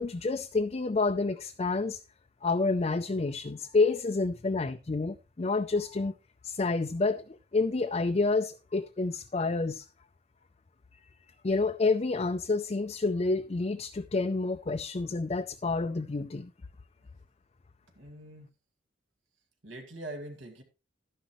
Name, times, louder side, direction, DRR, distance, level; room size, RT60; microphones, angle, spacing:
voice 1, 0.0-2.0 2.4-6.1 6.4-9.9 10.9-16.5, left 3 dB, 35° left, 0.4 m, -29 dB
voice 2, 18.0-18.5 19.6-20.6, right 1 dB, 80° right, 2.2 m, -43 dB
12.0 x 10.0 x 3.1 m
head